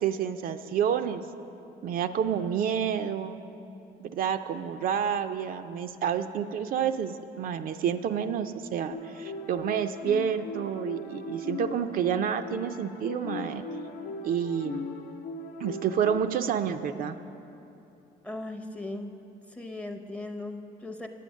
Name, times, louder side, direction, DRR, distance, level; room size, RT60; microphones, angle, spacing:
voice 1, 0.0-1.2 1.8-3.4 4.0-13.6 14.2-14.9 15.6-17.2, right 8 dB, 60° right, 8 dB, 0.4 m, -29 dB
sound 1, 8.9-16.2, left 3 dB, 80° left, 0.8 m, -39 dB
voice 2, 18.2-19.2 19.5-21.1, left 2 dB, 5° left, 6 dB, 0.6 m, -38 dB
9.2 x 8.3 x 6.2 m, 2.9 s
cardioid pair, 110°, 17 cm